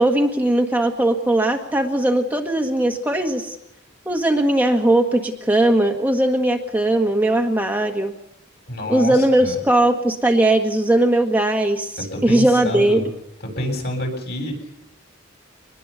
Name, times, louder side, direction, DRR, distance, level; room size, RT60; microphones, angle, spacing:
voice 1, 0.0-3.6 4.0-8.1 8.9-13.0, right 1 dB, 10° right, 2 dB, 1.5 m, -19 dB
voice 2, 8.7-9.5 12.0-13.1 13.6-14.5, left 1 dB, 50° left, 4 dB, 7.9 m, -28 dB
24.5 x 20.5 x 6.9 m, 0.81 s
head